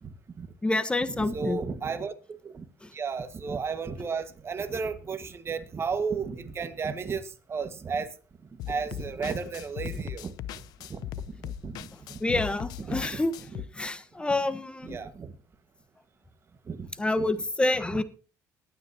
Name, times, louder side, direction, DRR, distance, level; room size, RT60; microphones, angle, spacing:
voice 1, 0.0-0.5 1.1-2.6 2.9-8.1 8.7-10.6 10.9-12.4 12.8-13.6 14.8-15.3 16.7-16.9 17.2-17.3 17.9-18.0, right 5 dB, 40° right, 9 dB, 1.6 m, -34 dB
voice 2, 0.6-1.6 2.8-2.9 12.2-13.3 13.8-15.0 17.0-18.0, left 2 dB, 15° left, 12 dB, 1.3 m, -27 dB
sound 1, 8.6-13.7, left 11 dB, 75° left, 0.6 m, -39 dB
21.5 x 9.4 x 2.9 m, 0.35 s
supercardioid pair, 80°, 7 cm